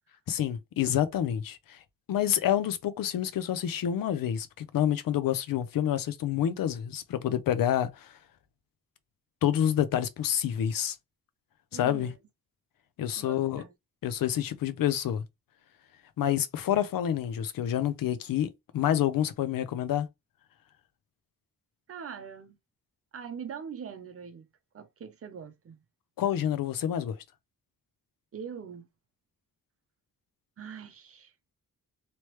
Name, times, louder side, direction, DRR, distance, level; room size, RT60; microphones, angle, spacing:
voice 1, 0.3-1.8 2.1-8.2 9.4-11.0 11.7-12.1 13.0-13.6 14.0-15.2 16.2-20.1 26.2-27.2, left 10 dB, 80° left, 0.6 m, -28 dB
voice 2, 11.7-12.2 13.2-13.7 21.9-22.6 23.1-24.5 24.7-25.8 28.3-28.9 30.6-31.5, right 7 dB, 45° right, 0.7 m, -42 dB
3.1 x 3.0 x 3.0 m
wide cardioid pair, 160°, 34 cm